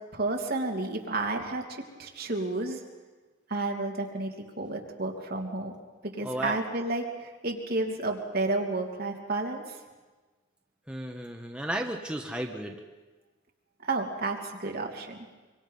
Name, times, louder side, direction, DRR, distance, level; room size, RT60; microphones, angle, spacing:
voice 1, 0.1-2.8 3.5-5.7 6.2-9.6 13.8-15.2, right 2 dB, 55° right, 1 dB, 2.9 m, -31 dB
voice 2, 6.2-6.6 10.9-12.8, right 1 dB, 5° right, 1 dB, 1.3 m, -34 dB
25.0 x 24.5 x 5.6 m, 1.3 s
head